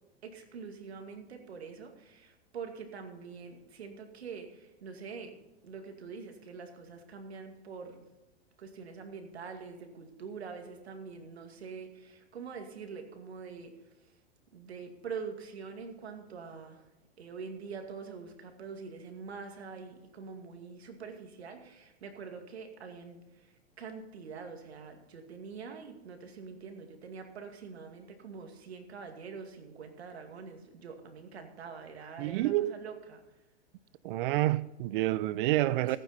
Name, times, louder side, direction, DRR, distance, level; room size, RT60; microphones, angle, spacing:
voice 1, 0.2-5.3 5.6-8.1 8.6-14.2 14.5-16.9 17.2-33.2 35.9-36.0, right 5 dB, 80° right, 2.4 m, -45 dB
voice 2, 32.2-32.7 34.0-36.0, right 16 dB, 55° right, 0.7 m, -28 dB
15.5 x 9.0 x 4.3 m
hypercardioid pair, 115°, 32 cm